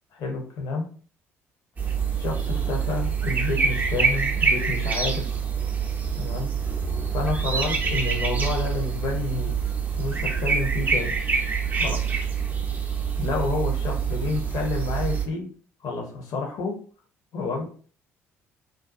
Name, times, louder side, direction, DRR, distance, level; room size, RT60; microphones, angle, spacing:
voice 1, 0.1-0.9 2.1-5.3 6.2-6.5 7.1-9.5 10.0-11.1 11.8-12.1 13.2-15.5 15.8-16.7 17.3-17.7, left 3 dB, 55° left, 1 dB, 0.9 m, -29 dB
sound 1, 1.8-15.3, right 6 dB, 25° right, 0.6 m, -26 dB
2.6 x 2.3 x 2.5 m, 0.41 s
figure-of-eight pair, 50°, 7 cm